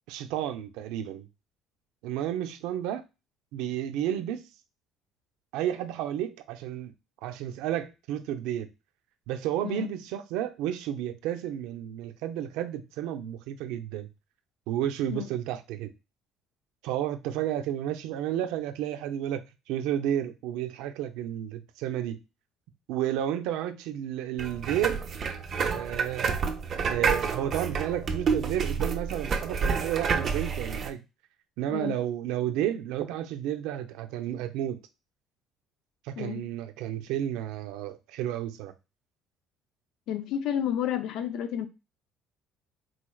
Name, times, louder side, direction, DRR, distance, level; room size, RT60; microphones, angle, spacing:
voice 1, 0.1-1.3 2.0-3.0 3.5-4.5 5.5-6.9 7.2-8.7 9.3-14.1 14.7-15.9 16.8-22.2 22.9-25.0 25.6-26.3 26.7-31.0 31.6-34.8 36.0-38.7, right 11 dB, 85° right, 0.5 m, -31 dB
sound 1, 24.4-30.9, right 5 dB, 35° right, 0.5 m, -29 dB
voice 2, 40.1-41.7, left 10 dB, 60° left, 0.4 m, -31 dB
4.0 x 3.2 x 2.3 m
cardioid pair, 160°, 0 cm